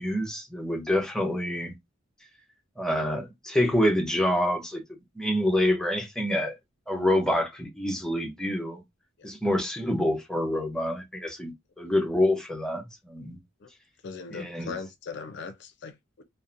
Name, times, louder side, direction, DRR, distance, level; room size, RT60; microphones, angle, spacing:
voice 1, 0.0-1.7 2.8-4.8 5.2-6.6 6.9-8.8 9.2-13.4 14.3-14.7, left 1 dB, 5° left, 0.6 m, -27 dB
voice 2, 14.0-16.2, left 5 dB, 60° left, 0.4 m, -39 dB
2.7 x 2.0 x 2.5 m
head